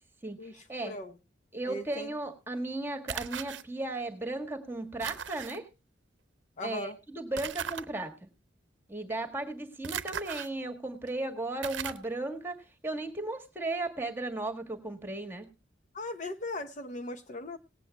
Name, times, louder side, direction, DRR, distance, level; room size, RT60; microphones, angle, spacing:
voice 1, 0.2-0.9 1.5-5.7 6.6-8.3 8.9-15.5, right 2 dB, 10° right, 5 dB, 1.6 m, -36 dB
voice 2, 0.8-1.1 1.7-2.1 6.6-7.0 15.9-17.6, left 2 dB, 45° left, 8 dB, 0.8 m, -38 dB
sound 1, 3.1-3.6 5.0-5.6 7.4-7.8 9.8-10.5 11.1-11.2 11.6-12.1, right 8 dB, 80° right, 0.7 m, -37 dB
18.5 x 8.4 x 3.3 m, 0.26 s
head